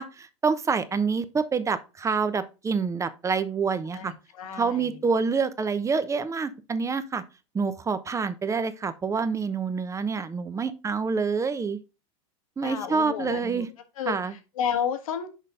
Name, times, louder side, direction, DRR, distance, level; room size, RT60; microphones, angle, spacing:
voice 1, 0.0-4.1 4.5-7.2 7.5-11.8 12.6-13.7 14.1-14.3, right 5 dB, 15° right, 0.8 m, -27 dB
voice 2, 3.9-5.0 12.6-13.6 14.0-15.3, left 8 dB, 80° left, 1.4 m, -32 dB
6.4 x 5.3 x 3.6 m
hypercardioid pair, 100°, 17 cm